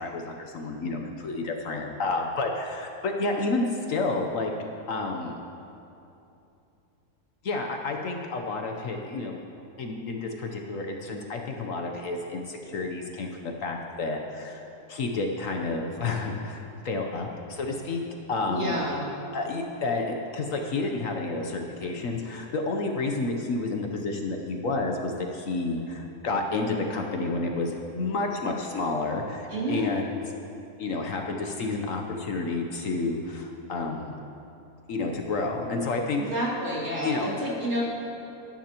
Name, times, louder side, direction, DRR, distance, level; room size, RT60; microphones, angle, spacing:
voice 1, 0.0-4.5 4.9-5.3 7.4-9.4 9.8-18.0 18.3-18.8 19.3-30.2 30.8-34.1 34.9-36.3 37.0-37.5, left 3 dB, 60° left, 2 dB, 1.1 m, -30 dB
voice 2, 18.5-19.0 29.5-29.9 36.2-37.8, equal, 45° right, -7 dB, 3.0 m, -29 dB
19.5 x 10.0 x 2.9 m, 2.8 s
omnidirectional pair, 1.6 m